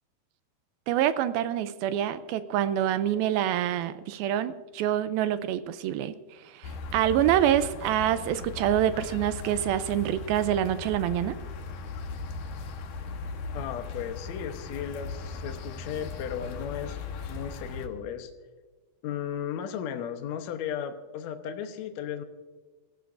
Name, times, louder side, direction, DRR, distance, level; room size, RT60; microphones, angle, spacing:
voice 1, 0.9-11.4, right 11 dB, 80° right, 12 dB, 2.3 m, -26 dB
sound 1, 6.6-17.9, left 4 dB, 65° left, 2.4 m, -38 dB
voice 2, 13.5-17.0 17.3-18.3 19.0-22.2, left 9 dB, 80° left, 6 dB, 1.6 m, -35 dB
25.5 x 14.5 x 2.5 m, 1.3 s
omnidirectional pair, 4.4 m